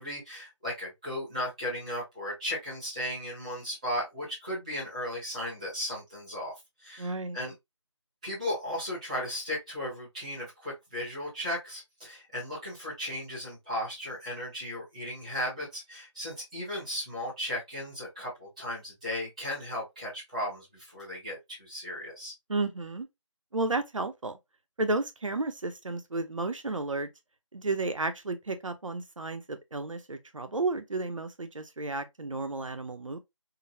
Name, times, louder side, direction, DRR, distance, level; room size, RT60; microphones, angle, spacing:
voice 1, 0.0-6.5 6.8-7.5 8.2-22.3, left 1 dB, 15° right, 1.1 m, -36 dB
voice 2, 7.0-7.4 22.5-23.1 23.5-24.4 24.8-27.1 27.5-33.2, right 3 dB, 90° right, 0.7 m, -32 dB
3.8 x 2.1 x 2.7 m
figure-of-eight pair, 170°, 16 cm